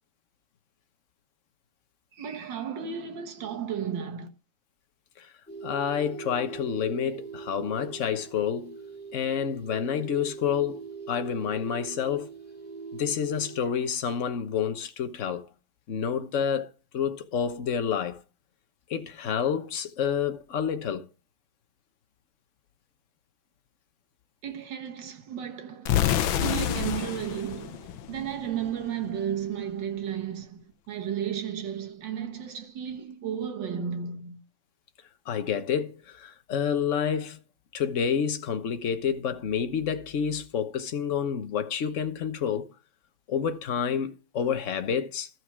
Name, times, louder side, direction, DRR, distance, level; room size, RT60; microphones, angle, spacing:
voice 1, 2.2-4.3 24.4-26.1 26.4-30.6 30.9-34.4, right 8 dB, 65° right, 2.0 m, -33 dB
sound 1, 5.5-13.6, right 5 dB, 5° left, 3.1 m, -41 dB
voice 2, 5.6-8.8 9.1-10.8 11.1-12.3 12.9-15.4 15.9-18.2 18.9-21.1 35.3-37.4 37.7-42.7 43.3-45.3, left 7 dB, 45° left, 1.1 m, -29 dB
sound 2, 25.9-28.7, left 11 dB, 80° left, 1.6 m, -28 dB
13.0 x 6.2 x 6.1 m
omnidirectional pair, 2.2 m